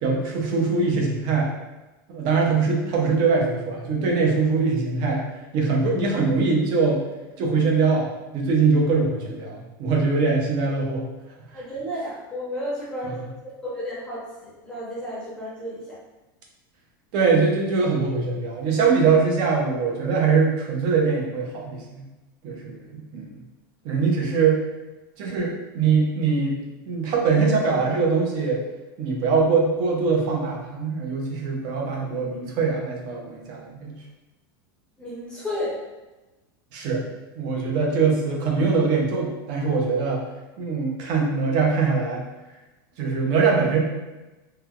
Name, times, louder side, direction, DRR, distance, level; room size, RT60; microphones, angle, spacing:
voice 1, 0.0-1.5 2.1-5.2 5.5-7.0 7.4-8.1 8.3-11.0 13.1-13.2 17.1-22.0 22.4-23.3 23.8-24.6 25.2-26.6 26.9-28.6 29.0-34.0 36.7-37.0 37.4-40.2 40.6-42.2 43.0-43.8, right 4 dB, 40° right, -1 dB, 0.6 m, -22 dB
voice 2, 11.5-13.3 13.6-16.0 35.0-35.7, equal, 5° left, -8 dB, 0.7 m, -32 dB
3.1 x 2.2 x 2.3 m, 1.1 s
supercardioid pair, 160°, 12 cm